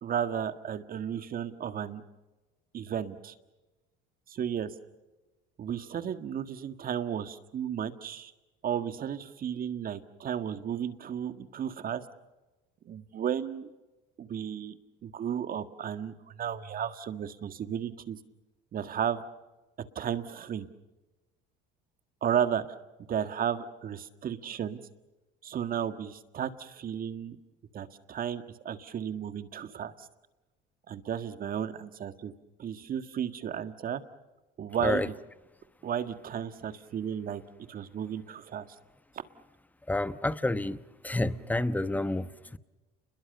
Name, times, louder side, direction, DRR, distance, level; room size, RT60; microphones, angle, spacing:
voice 1, 0.0-2.0 2.7-3.3 4.3-4.7 5.6-8.3 8.6-12.0 12.8-13.7 14.2-18.2 18.7-19.2 19.8-20.7 22.2-22.6 23.1-24.8 25.4-27.4 27.7-30.1 30.9-32.3 32.6-34.0 34.6-35.1 35.8-37.4 37.7-38.6, right 9 dB, 45° right, 11 dB, 1.8 m, -33 dB
voice 2, 39.9-42.6, left 2 dB, 10° left, 14 dB, 1.1 m, -29 dB
29.5 x 21.5 x 6.8 m, 1.1 s
supercardioid pair, 95°, 21 cm